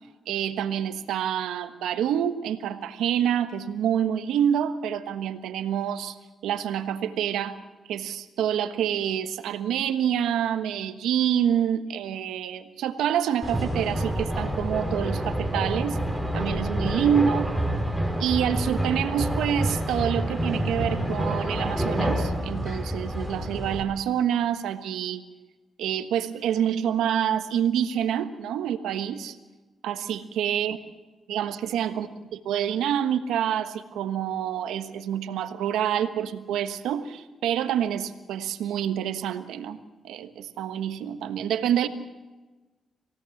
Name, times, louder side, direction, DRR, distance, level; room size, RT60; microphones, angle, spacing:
voice 1, 0.3-6.2 6.4-7.6 7.9-16.0 16.3-17.4 18.2-25.2 25.8-29.4 29.8-30.8 31.3-32.1 32.4-39.8 40.0-41.9, right 9 dB, 90° right, 9 dB, 1.3 m, -27 dB
sound 1, 13.4-23.8, right 1 dB, 5° left, 5.7 m, -28 dB
27.0 x 17.0 x 7.2 m, 1.2 s
supercardioid pair, 55°, 0 cm